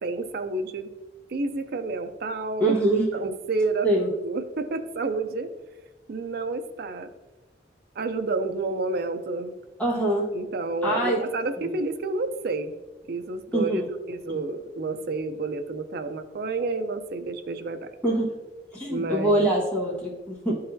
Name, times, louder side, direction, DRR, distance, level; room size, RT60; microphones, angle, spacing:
voice 1, 0.0-0.9 1.3-2.8 3.1-3.9 4.2-5.5 6.1-7.1 8.0-9.5 10.3-12.7 13.1-13.8 14.1-18.0 18.9-19.5, right 3 dB, 60° right, 8 dB, 0.5 m, -30 dB
voice 2, 2.6-3.1 3.8-4.1 9.8-10.2 10.8-11.2 11.6-11.7 13.5-13.9 14.3-14.4 18.0-18.3 18.7-20.5, right 1 dB, 10° left, -6 dB, 1.3 m, -24 dB
11.0 x 4.0 x 2.6 m, 1.1 s
head